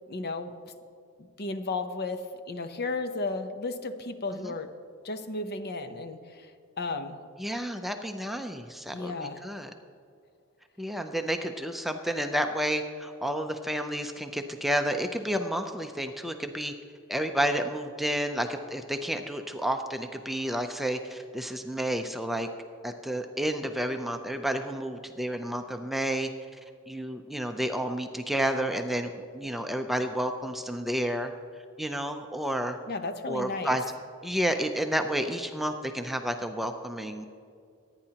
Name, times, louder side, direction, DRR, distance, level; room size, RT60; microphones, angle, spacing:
voice 1, 0.1-0.5 1.4-4.7 5.0-6.5 6.8-7.2 8.9-9.4 32.9-33.8, left 3 dB, 50° left, 8 dB, 0.7 m, -34 dB
voice 2, 7.4-9.7 10.8-16.7 17.1-22.5 22.8-26.3 26.9-31.3 31.8-32.8 33.3-33.8 34.2-37.3, equal, ahead, 5 dB, 0.5 m, -30 dB
25.0 x 9.8 x 2.9 m, 2.2 s
head